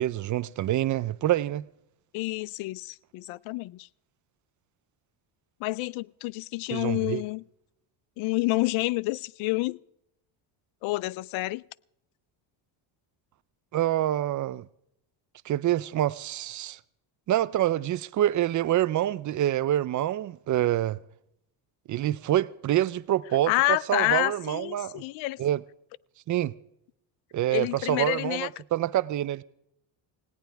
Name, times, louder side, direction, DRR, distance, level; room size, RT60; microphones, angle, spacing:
voice 1, 0.0-1.6 6.7-7.2 13.7-14.7 15.5-16.8 17.3-21.0 21.9-23.5 23.9-25.0 25.4-25.6 26.3-26.5 27.3-29.4, right 13 dB, 40° right, 0.5 m, -26 dB
voice 2, 2.1-3.9 5.6-7.4 8.2-9.8 10.8-11.6 23.5-25.4 27.5-28.5, left 20 dB, 85° left, 0.6 m, -28 dB
19.5 x 17.5 x 3.4 m
cardioid pair, 145°, 46 cm